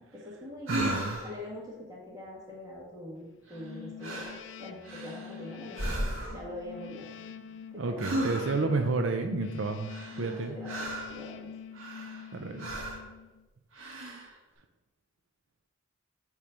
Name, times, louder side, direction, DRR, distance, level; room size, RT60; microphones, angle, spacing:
voice 1, 0.0-4.3 4.6-6.0 6.3-7.1 7.7-8.6 10.2-11.5, left 1 dB, 15° right, -4 dB, 1.7 m, -43 dB
voice 2, 0.7-1.2 7.8-10.6 12.3-12.7, right 3 dB, 65° right, 5 dB, 0.5 m, -31 dB
sound 1, 0.7-1.4 3.5-3.7 4.0-4.4 4.8-5.4 5.7-6.5 8.0-8.7 9.9-11.2 11.7-12.3 12.6-13.1 13.7-14.3, right 1 dB, 80° right, 1.3 m, -35 dB
sound 2, 3.5-13.5, left 7 dB, 60° left, 0.4 m, -45 dB
8.5 x 3.2 x 5.1 m, 1.1 s
head